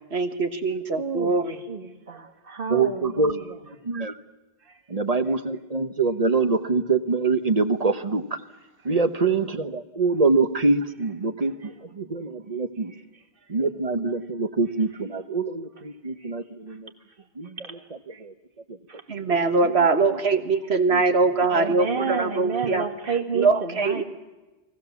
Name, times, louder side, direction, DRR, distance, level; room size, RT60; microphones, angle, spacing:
voice 1, 0.1-1.6 19.1-22.8 23.3-24.0, right 4 dB, 75° right, 8 dB, 1.7 m, -22 dB
voice 2, 1.0-1.3 1.7-3.5 4.7-4.8 16.2-16.3 17.6-17.8 18.1-18.2 18.9-19.0 21.5-24.0, right 5 dB, 55° right, 7 dB, 2.0 m, -30 dB
voice 3, 2.7-3.3 3.7-4.2 4.9-8.4 8.8-12.9 13.5-16.9 17.4-18.3 18.7-18.8 19.6-19.9 20.9-21.0 22.1-22.2, right 3 dB, 35° right, 10 dB, 1.1 m, -25 dB
29.0 x 20.0 x 7.1 m, 1.1 s
omnidirectional pair, 1.1 m